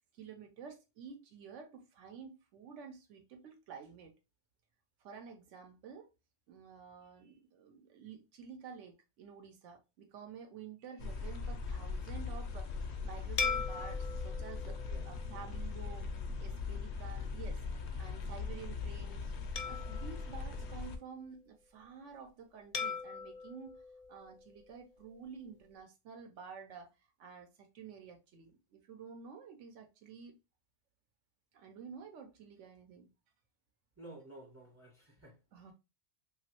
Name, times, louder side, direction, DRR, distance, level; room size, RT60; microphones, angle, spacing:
voice 1, 0.1-4.1 5.0-6.1 6.5-14.8 15.0-16.1 16.4-19.3 19.6-23.8 24.1-26.9 27.2-30.3 31.5-33.1 35.5-35.7, right 6 dB, 85° right, 1.1 m, -51 dB
sound 1, 11.0-21.0, left 4 dB, 70° left, 0.8 m, -40 dB
sound 2, 13.4-16.1 16.6-16.8 19.6-21.3 22.7-25.0, left 5 dB, 55° left, 0.4 m, -41 dB
voice 2, 14.6-15.1 34.0-35.4, right 1 dB, 20° right, 0.4 m, -53 dB
3.0 x 2.6 x 2.8 m
omnidirectional pair, 1.2 m